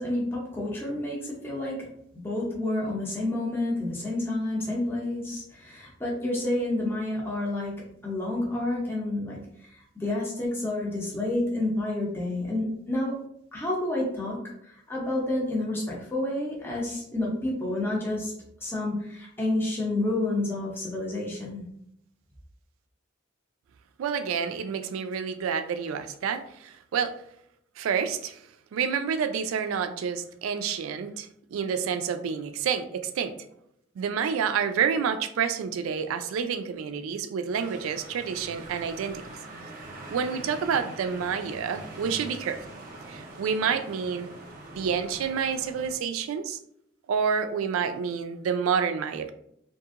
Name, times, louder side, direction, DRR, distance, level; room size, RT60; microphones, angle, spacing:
voice 1, 0.0-1.9 2.1-13.2 13.5-18.3 18.6-21.6, left 1 dB, 10° left, -4 dB, 0.6 m, -29 dB
voice 2, 24.0-27.1 27.8-28.4 28.7-33.3 34.0-39.2 40.1-42.6 43.1-44.3 44.7-46.6 47.1-49.3, right 6 dB, 85° right, 9 dB, 0.3 m, -28 dB
sound 1, 37.5-45.9, right 2 dB, 45° right, 0.6 m, -43 dB
2.7 x 2.6 x 2.4 m, 0.74 s
head